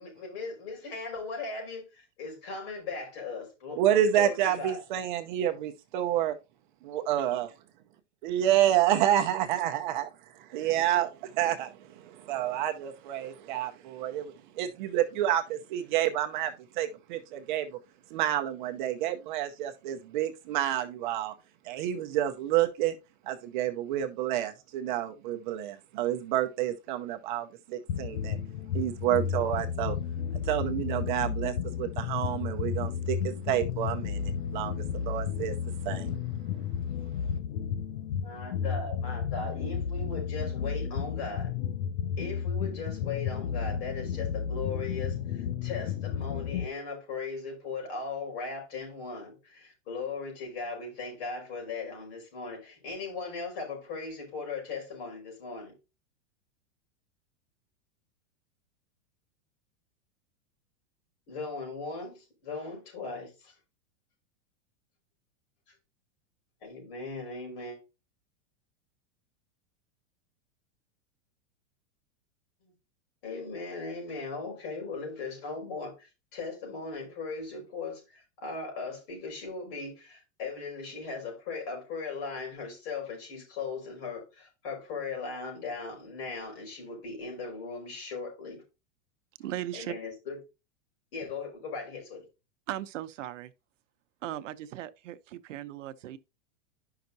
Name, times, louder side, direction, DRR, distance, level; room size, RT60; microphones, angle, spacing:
voice 1, 0.0-4.8 38.2-41.5 42.2-55.7 61.3-63.5 66.6-67.8 72.6-72.7 73.2-88.6 89.7-90.4 91.1-92.3, left 4 dB, 50° left, 5.2 m, -38 dB
voice 2, 3.8-6.3 6.9-7.5 8.2-10.1 10.3-17.8 18.1-21.3 21.6-23.0 23.3-28.4 28.7-30.0 30.4-35.5 35.8-36.2, right 11 dB, 40° right, 0.8 m, -29 dB
sound 1, 27.9-46.7, left 7 dB, 75° left, 0.7 m, -32 dB
voice 3, 89.4-89.9 92.7-93.5 94.2-96.2, right 13 dB, 80° right, 0.8 m, -37 dB
10.5 x 5.8 x 2.7 m
supercardioid pair, 170°, 37 cm